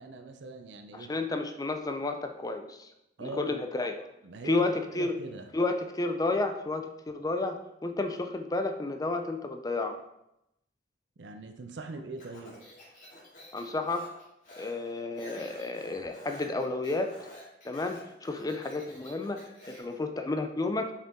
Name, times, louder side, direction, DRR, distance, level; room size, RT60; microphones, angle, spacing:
voice 1, 0.0-1.1 3.2-3.6 4.2-5.5 11.2-12.6, right 2 dB, 85° right, 6 dB, 0.6 m, -42 dB
voice 2, 0.9-2.9 3.2-4.0 4.4-5.2 5.5-10.0 13.5-14.1 14.6-17.2 17.6-20.9, left 2 dB, 20° left, 6 dB, 0.5 m, -31 dB
Speech, 12.2-20.0, left 1 dB, 45° left, 2.1 m, -50 dB
5.5 x 4.9 x 3.7 m, 0.86 s
head